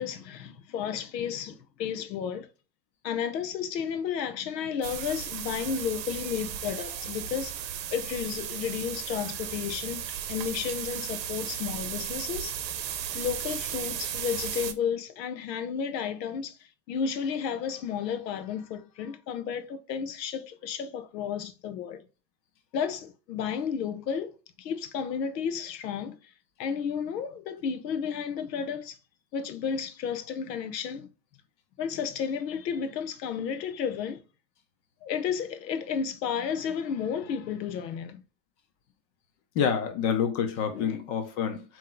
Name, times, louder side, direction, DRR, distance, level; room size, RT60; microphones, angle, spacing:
voice 1, 0.0-2.5 3.0-7.5 7.9-10.0 10.3-12.5 13.1-16.6 16.9-22.0 22.7-26.2 26.6-29.0 29.3-31.1 31.8-34.2 35.0-38.2 40.7-41.0, left 7 dB, 80° left, 0.9 m, -32 dB
sound 1, 4.8-14.7, right 9 dB, 85° right, 0.8 m, -35 dB
voice 2, 39.5-41.8, left 7 dB, 45° left, 1.0 m, -28 dB
3.8 x 3.1 x 3.8 m
supercardioid pair, 140°, 50 cm